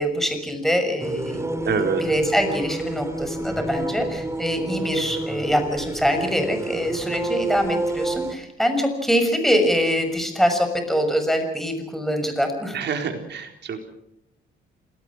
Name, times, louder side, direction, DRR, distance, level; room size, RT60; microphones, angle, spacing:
voice 1, 0.0-12.8, equal, ahead, 6 dB, 6.3 m, -24 dB
sound 1, 1.0-8.3, right 2 dB, 15° right, 2.3 m, -29 dB
voice 2, 1.7-2.0 12.7-13.8, right 6 dB, 60° right, 5 dB, 4.2 m, -26 dB
27.0 x 18.5 x 6.3 m, 0.79 s
cardioid pair, 90°, 20 cm